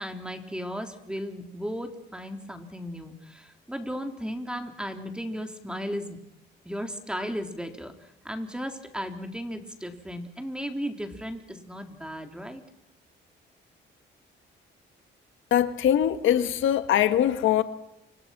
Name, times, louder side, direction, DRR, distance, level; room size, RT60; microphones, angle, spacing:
voice 1, 0.0-6.2 6.6-7.9 8.2-12.6, equal, 5° right, 5 dB, 4.0 m, -35 dB
voice 2, 15.5-17.6, left 10 dB, 80° left, 10 dB, 1.6 m, -22 dB
29.5 x 26.0 x 6.1 m, 0.83 s
cardioid pair, 90°, 20 cm